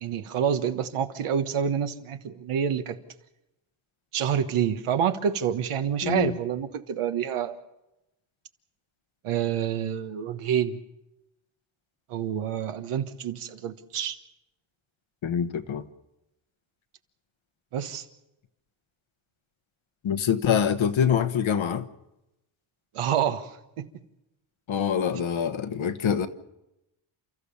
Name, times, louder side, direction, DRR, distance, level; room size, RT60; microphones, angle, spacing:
voice 1, 0.0-3.0 4.1-7.5 9.2-10.8 12.1-14.2 17.7-18.0 22.9-23.5 23.8-23.9, right 8 dB, 90° right, 1.4 m, -27 dB
voice 2, 6.0-6.4 15.2-15.8 20.0-21.9 24.7-26.3, left 8 dB, 70° left, 1.3 m, -25 dB
30.0 x 13.5 x 7.1 m
cardioid pair, 100°, 50 cm